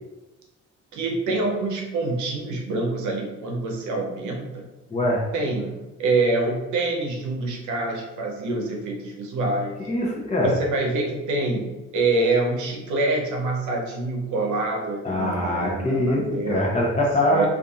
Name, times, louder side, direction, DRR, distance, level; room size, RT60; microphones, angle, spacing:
voice 1, 0.9-4.7 5.3-9.8 10.4-16.7 17.3-17.5, right 2 dB, 80° right, 0 dB, 0.7 m, -26 dB
voice 2, 4.9-5.2 9.9-10.6 15.0-17.5, left 1 dB, 20° left, -1 dB, 0.7 m, -23 dB
2.6 x 2.5 x 2.4 m, 1.0 s
cardioid pair, 90°, 30 cm